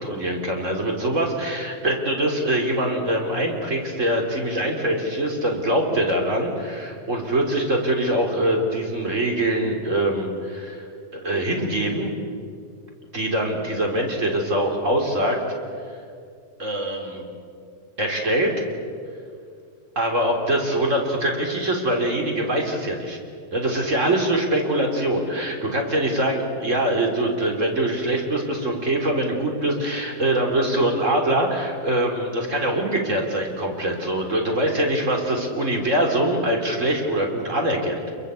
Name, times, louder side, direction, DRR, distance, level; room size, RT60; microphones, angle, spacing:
voice 1, 0.0-10.9 11.1-12.1 13.1-15.4 16.6-17.2 18.0-18.6 20.0-23.2 23.5-38.0, right 1 dB, 20° right, 2 dB, 3.5 m, -23 dB
28.5 x 22.5 x 8.3 m, 2.3 s
omnidirectional pair, 4.0 m